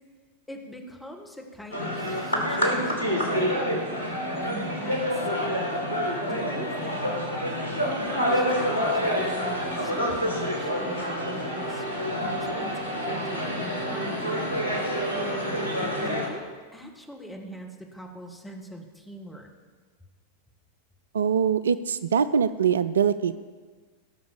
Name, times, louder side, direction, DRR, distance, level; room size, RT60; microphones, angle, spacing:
voice 1, 0.5-3.6 4.4-5.7 6.2-7.2 7.8-11.9 12.4-15.6 16.0-16.5 16.7-19.5, equal, 5° left, 2 dB, 1.6 m, -41 dB
sound 1, 1.7-16.3, equal, 75° left, 2.1 m, -28 dB
sound 2, 8.3-16.2, right 2 dB, 30° right, 2.6 m, -41 dB
voice 2, 21.1-23.4, right 7 dB, 65° right, 14 dB, 0.3 m, -23 dB
16.5 x 6.1 x 7.2 m, 1.5 s
figure-of-eight pair, 90°, 0 cm